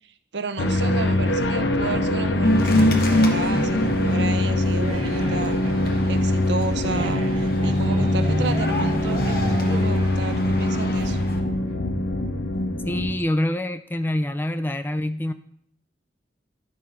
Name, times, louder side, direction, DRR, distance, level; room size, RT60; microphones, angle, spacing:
voice 1, 0.3-5.6 6.1-11.2, right 3 dB, 75° right, 9 dB, 0.7 m, -31 dB
sound 1, 0.6-13.1, left 1 dB, 75° left, 0.7 m, -23 dB
sound 2, 2.4-11.4, left 1 dB, 55° left, 1.2 m, -27 dB
sound 3, 2.8-11.5, right 1 dB, 30° right, 1.1 m, -32 dB
voice 2, 12.9-15.3, left 1 dB, 10° left, 11 dB, 0.3 m, -25 dB
10.5 x 4.8 x 5.8 m, 0.64 s
head